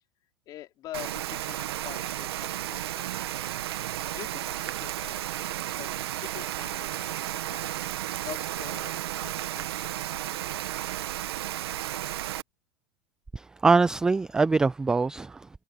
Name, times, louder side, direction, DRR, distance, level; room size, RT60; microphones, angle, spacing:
voice 1, 0.5-3.4 3.8-10.6, left 14 dB, 30° left, 4.4 m, -46 dB
Rain, 0.9-12.4, right 13 dB, 80° right, 1.8 m, -33 dB
voice 2, 13.3-15.5, right 4 dB, 5° right, 0.3 m, -23 dB
supercardioid pair, 160°, 13 cm